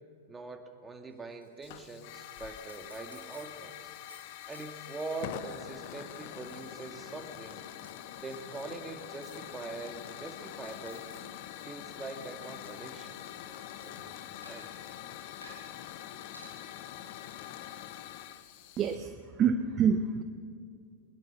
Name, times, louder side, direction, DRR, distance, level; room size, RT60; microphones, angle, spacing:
voice 1, 0.3-3.9 4.5-7.7 8.2-11.1 11.6-13.2 13.8-14.2 14.5-14.7 15.2-15.3, right 3 dB, 15° right, 4 dB, 2.2 m, -43 dB
sound 1, 1.1-1.6 1.9-2.0 2.4-2.5 2.7-3.4 3.8-7.9 8.2-8.6 9.2-9.4 10.1-11.1 11.5-14.0 14.4-14.9 15.4-15.7 16.3-16.5, equal, 90° left, 7.0 m, -55 dB
Hiss / Fire, 1.6-18.9, left 12 dB, 50° left, 1.1 m, -45 dB
voice 2, 18.8-19.1 19.4-20.2, right 7 dB, 30° right, 9 dB, 0.9 m, -26 dB
21.5 x 21.0 x 5.9 m, 2.3 s
figure-of-eight pair, 95°, 0 cm